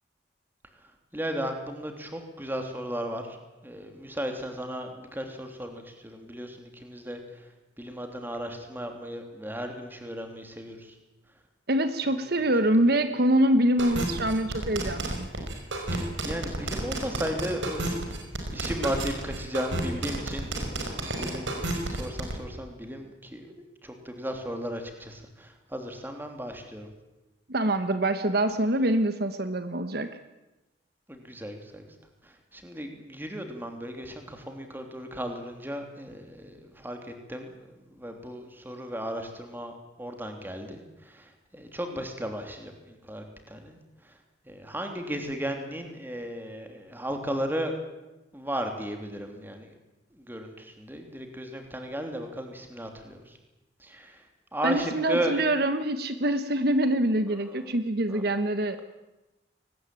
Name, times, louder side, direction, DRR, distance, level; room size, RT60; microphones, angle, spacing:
voice 1, 1.1-3.4 3.6-7.2 7.8-10.8 15.9-18.3 18.5-23.5 23.8-26.9 31.1-31.8 32.5-37.0 37.3-41.2 41.5-43.8 44.5-47.7 48.3-49.7 50.3-53.2 53.8-54.2 54.5-55.4 58.1-58.2, equal, 10° right, 5 dB, 3.2 m, -35 dB
voice 2, 11.7-15.3 27.5-30.1 54.6-58.8, right 1 dB, 55° right, 10 dB, 1.2 m, -25 dB
sound 1, 13.8-22.3, right 2 dB, 85° right, 5.4 m, -31 dB
22.5 x 19.5 x 9.1 m, 1.0 s
head